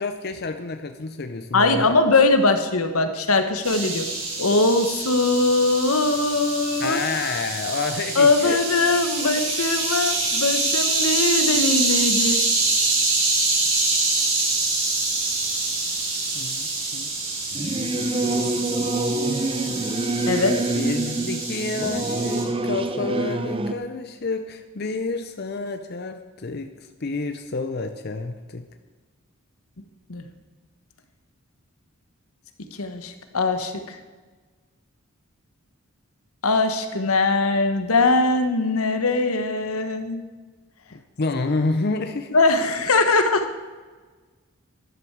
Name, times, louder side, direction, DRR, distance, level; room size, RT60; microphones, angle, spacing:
voice 1, 0.0-1.9 6.8-8.6 9.2-9.3 16.3-17.1 20.7-28.6 40.9-42.4, left 3 dB, 50° left, 7 dB, 0.6 m, -29 dB
voice 2, 1.5-4.0 4.4-7.0 8.1-12.5 20.3-20.6 30.1-30.2 32.7-34.0 36.4-40.2 42.3-43.5, left 3 dB, 85° left, 8 dB, 1.2 m, -21 dB
sound 1, 3.6-22.4, right 3 dB, 85° right, 4.5 m, -25 dB
Singing / Musical instrument, 17.5-23.7, right 2 dB, 25° right, 0.6 m, -26 dB
13.0 x 11.0 x 4.7 m, 1.4 s
head